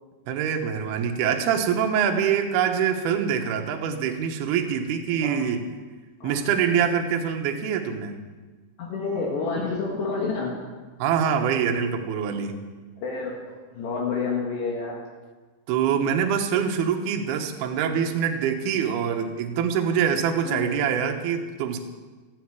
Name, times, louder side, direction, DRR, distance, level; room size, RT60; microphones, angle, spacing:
voice 1, 0.3-5.6 6.2-8.2 11.0-12.6 15.7-21.8, right 7 dB, 70° right, 4 dB, 2.7 m, -24 dB
voice 2, 8.8-10.7 13.0-15.0 20.4-20.8, left 4 dB, 65° left, -2 dB, 3.6 m, -29 dB
18.0 x 14.5 x 4.8 m, 1.3 s
omnidirectional pair, 5.8 m